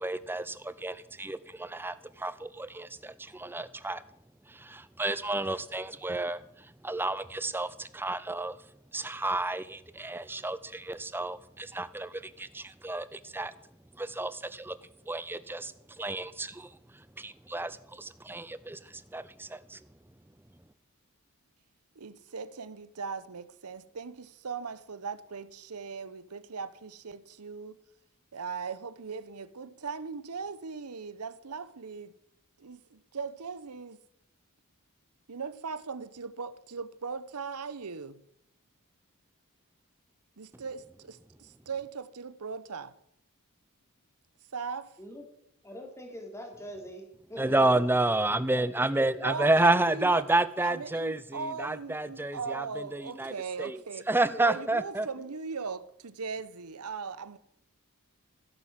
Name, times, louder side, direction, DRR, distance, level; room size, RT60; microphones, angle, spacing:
voice 1, 0.0-4.0 4.5-8.6 8.9-13.5 14.0-14.8 15.1-19.8 47.4-53.8 54.1-55.1, right 2 dB, 10° right, 0.6 m, -30 dB
voice 2, 22.0-27.8 28.3-32.1 32.6-34.0 35.3-38.2 40.4-42.9 44.5-44.9 49.2-54.0 54.4-57.4, right 5 dB, 85° right, 0.9 m, -39 dB
voice 3, 45.6-47.8 48.5-49.6 54.2-54.7, equal, 10° left, 3.1 m, -43 dB
15.5 x 8.7 x 7.5 m
head